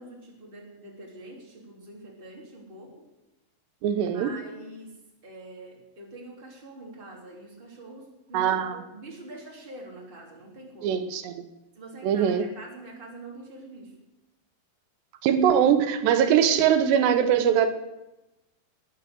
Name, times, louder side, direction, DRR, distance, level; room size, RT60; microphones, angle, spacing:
voice 1, 0.0-3.1 4.1-11.0 11.7-14.0, right 2 dB, 15° right, -1 dB, 2.9 m, -45 dB
voice 2, 3.8-4.3 8.3-8.8 10.8-11.5 12.0-12.4 15.2-17.7, right 9 dB, 90° right, 8 dB, 3.3 m, -22 dB
19.5 x 7.4 x 7.9 m, 0.96 s
omnidirectional pair, 4.8 m